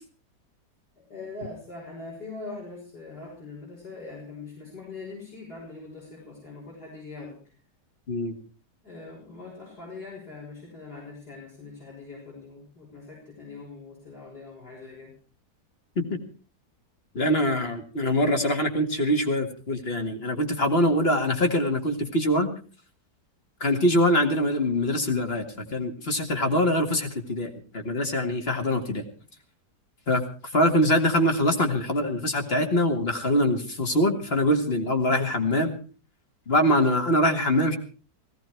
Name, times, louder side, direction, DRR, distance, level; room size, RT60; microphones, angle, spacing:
voice 1, 1.0-7.5 8.8-15.1, left 3 dB, 65° left, -4 dB, 7.2 m, -42 dB
voice 2, 17.1-22.5 23.6-29.1 30.1-35.8 36.5-37.8, left 1 dB, 35° left, 6 dB, 2.3 m, -24 dB
17.5 x 16.5 x 4.6 m, 0.38 s
omnidirectional pair, 1.8 m